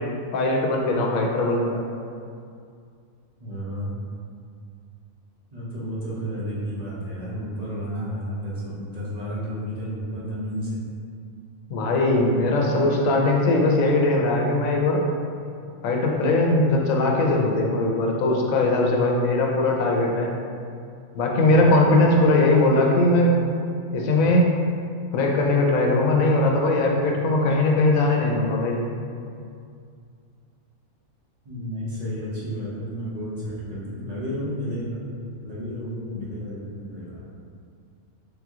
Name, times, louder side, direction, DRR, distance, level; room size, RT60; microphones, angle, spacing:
voice 1, 0.3-1.8 11.7-15.0 15.8-20.3 21.1-23.4 23.9-24.5 25.1-28.8, left 2 dB, 80° left, 0 dB, 1.0 m, -20 dB
voice 2, 3.4-3.9 5.5-10.8 31.4-35.0 35.4-37.2, equal, 35° right, -8 dB, 0.9 m, -32 dB
3.5 x 3.0 x 3.5 m, 2.3 s
omnidirectional pair, 1.4 m